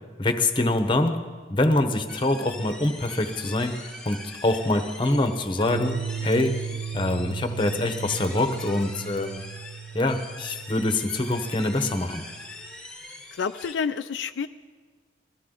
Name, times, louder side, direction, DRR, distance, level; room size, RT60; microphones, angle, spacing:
voice 1, 0.2-1.2 1.5-3.8 4.0-6.6 6.9-9.4 9.9-12.2, left 2 dB, 25° left, 7 dB, 0.9 m, -25 dB
sound 1, 2.1-13.7, left 2 dB, 5° left, 1.1 m, -42 dB
sound 2, 5.7-12.7, right 7 dB, 85° right, 0.3 m, -36 dB
voice 2, 13.3-14.5, left 6 dB, 70° left, 9 dB, 0.4 m, -29 dB
21.0 x 14.0 x 3.8 m, 1.5 s
head